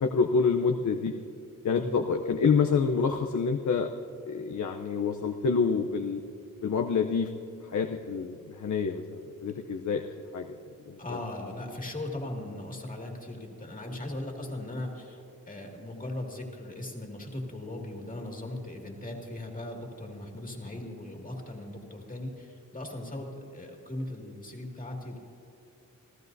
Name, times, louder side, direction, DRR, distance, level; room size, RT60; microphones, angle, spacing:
voice 1, 0.0-1.1 1.6-3.9 4.3-6.2 6.6-7.3 7.7-10.0 10.3-10.5 10.9-11.2, left 5 dB, 60° left, 5 dB, 0.7 m, -27 dB
voice 2, 11.0-25.2, left 1 dB, 25° left, 1 dB, 2.2 m, -38 dB
28.0 x 15.0 x 2.7 m, 2.7 s
wide cardioid pair, 120°, 33 cm